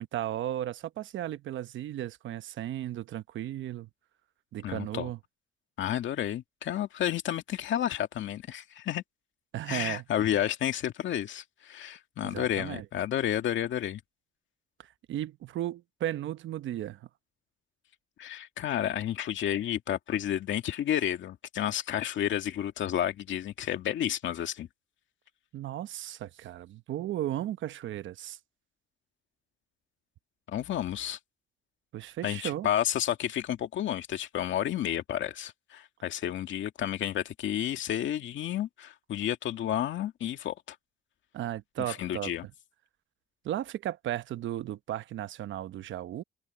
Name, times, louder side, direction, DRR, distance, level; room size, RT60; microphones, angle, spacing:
voice 1, 0.0-3.9 4.5-5.2 9.5-10.0 12.2-12.8 15.1-17.1 25.5-28.4 31.9-32.7 41.3-42.3 43.4-46.2, right 12 dB, 75° right, 0.9 m, -35 dB
voice 2, 4.6-5.1 5.8-9.0 9.7-14.0 18.2-24.7 30.5-31.2 32.2-40.8 41.9-42.5, left 11 dB, 70° left, 2.1 m, -31 dB
cardioid pair, 90°, 20 cm